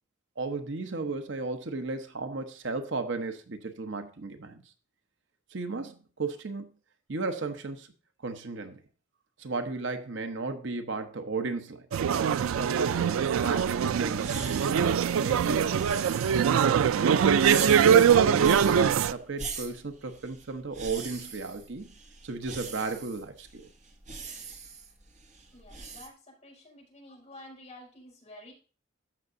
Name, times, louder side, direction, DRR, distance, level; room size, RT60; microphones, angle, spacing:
voice 1, 0.4-4.6 5.5-6.7 7.1-7.9 8.2-8.8 9.4-11.9 12.6-14.9 15.2-15.8 16.5-21.9 22.2-23.7, right 3 dB, 65° right, 0.9 m, -35 dB
sound 1, 11.9-19.1, right 8 dB, 90° right, 0.3 m, -23 dB
sound 2, 13.5-26.1, right 5 dB, 35° right, 1.2 m, -42 dB
voice 2, 25.5-28.5, left 1 dB, 30° left, 4.9 m, -50 dB
14.5 x 6.0 x 2.6 m
head